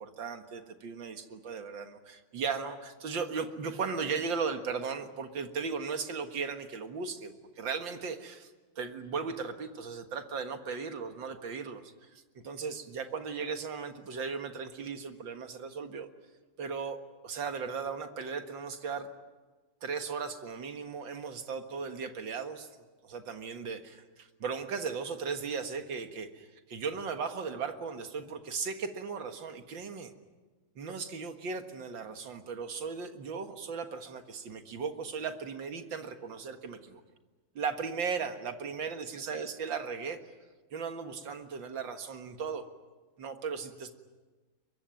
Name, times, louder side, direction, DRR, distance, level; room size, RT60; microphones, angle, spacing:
voice 1, 0.0-8.5 8.8-16.1 16.6-17.0 17.2-19.1 19.8-22.7 23.0-30.1 30.8-37.0 37.6-40.2 40.7-42.6 43.2-43.9, right 5 dB, 75° right, 7 dB, 2.4 m, -37 dB
23.0 x 23.0 x 9.2 m, 1.3 s
omnidirectional pair, 2.1 m